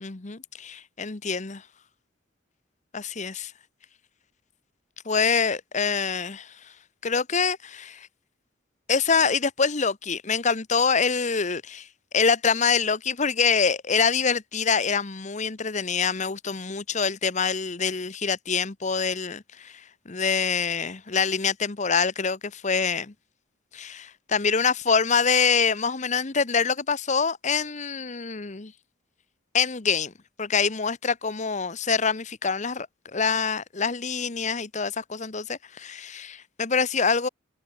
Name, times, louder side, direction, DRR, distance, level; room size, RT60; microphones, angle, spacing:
voice 1, 0.0-1.6 2.9-3.5 5.1-6.5 7.0-8.1 8.9-11.9 12.1-19.7 20.1-23.1 23.7-28.7 29.5-30.1 30.4-32.9 33.1-37.3, left 5 dB, 35° left, 1.0 m, -25 dB
head